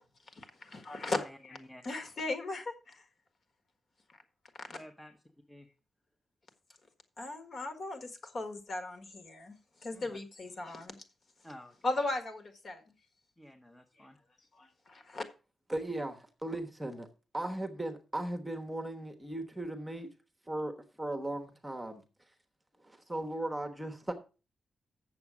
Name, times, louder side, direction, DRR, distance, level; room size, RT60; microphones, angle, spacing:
voice 1, 0.3-1.2 1.4-1.6 1.8-3.0 4.7-4.8 7.2-11.0 11.8-12.8 14.0-14.1 14.5-15.2, left 2 dB, 40° left, 1.5 m, -37 dB
voice 2, 1.1-1.8 4.7-5.1 5.5-5.7 9.9-10.2 11.4-11.8 13.4-14.2, left 1 dB, 10° left, 0.9 m, -51 dB
voice 3, 15.7-17.1 17.3-20.1 20.5-22.0 22.8-24.1, right 1 dB, 10° right, 1.1 m, -37 dB
7.9 x 7.1 x 6.0 m
wide cardioid pair, 160°, 0 cm